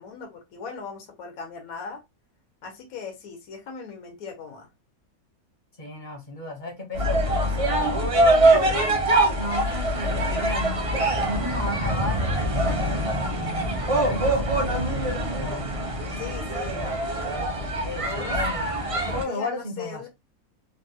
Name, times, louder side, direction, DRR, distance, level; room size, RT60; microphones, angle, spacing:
voice 1, 0.0-2.0 2.6-4.7 16.2-17.3 18.0-18.4 18.9-20.1, left 5 dB, 70° left, 1.3 m, -39 dB
voice 2, 5.8-8.0 8.5-8.9 9.4-12.6 13.2-13.7 14.0-14.5 15.4-15.7 17.4-18.0 18.3-18.8 19.1-20.1, left 2 dB, 40° left, 0.9 m, -34 dB
sound 1, 6.9-19.2, right 1 dB, 35° right, 0.6 m, -24 dB
3.2 x 2.2 x 2.7 m
omnidirectional pair, 1.6 m